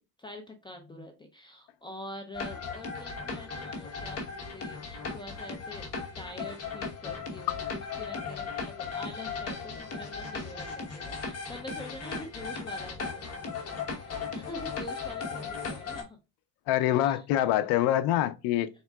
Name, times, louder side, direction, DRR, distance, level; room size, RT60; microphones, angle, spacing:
voice 1, 0.2-5.9 6.2-8.5 8.8-16.2 17.0-17.2, left 1 dB, 15° left, 0.5 m, -45 dB
sound 1, 2.3-16.0, left 5 dB, 45° left, 1.2 m, -37 dB
voice 2, 16.7-18.7, left 12 dB, 75° left, 0.6 m, -25 dB
4.2 x 3.6 x 2.2 m
cardioid pair, 125°, 35 cm